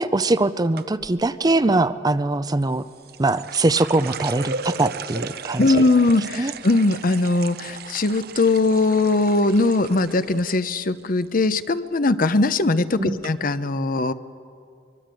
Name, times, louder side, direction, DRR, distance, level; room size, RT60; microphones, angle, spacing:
voice 1, 0.0-2.8 3.2-5.8 6.4-6.5 13.0-13.2, right 2 dB, 20° right, 13 dB, 0.5 m, -22 dB
sound 1, 0.8-1.2 2.6-10.6 10.9-11.5 11.8-12.1 12.8-12.9 13.2-13.3, right 5 dB, 55° right, 0.7 m, -35 dB
voice 2, 5.6-14.1, left 2 dB, 50° left, 13 dB, 0.7 m, -20 dB
23.5 x 23.5 x 7.7 m, 2.4 s
head